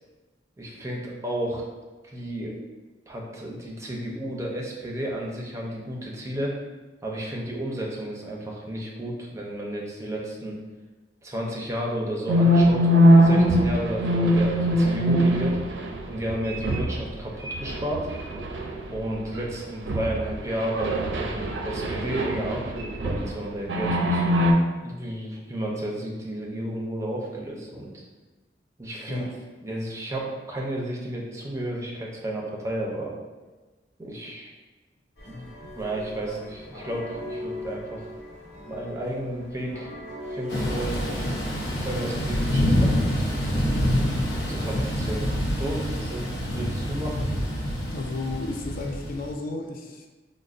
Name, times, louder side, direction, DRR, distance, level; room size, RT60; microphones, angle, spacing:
voice 1, 0.6-1.6 2.0-2.6 3.1-6.5 7.0-10.6 11.2-15.6 16.1-18.1 18.9-24.3 24.8-28.1 28.8-33.1 34.0-34.5 35.2-35.5 35.7-38.0 38.6-39.9 40.3-41.3 41.8-43.1 43.4-43.7 44.5-47.3, right 1 dB, 15° right, -3 dB, 0.5 m, -32 dB
sound 1, 12.3-17.1 17.4-19.0 19.3-19.5 19.9-23.3 23.7-24.5, equal, 80° right, 0.4 m, -22 dB
sound 2, 35.2-42.9, left 1 dB, 70° left, 1.3 m, -40 dB
Thunder / Rain, 40.5-49.3, equal, 90° left, 0.7 m, -26 dB
voice 2, 47.9-50.1, left 2 dB, 55° left, 2 dB, 0.4 m, -33 dB
5.1 x 2.1 x 2.4 m, 1.2 s
head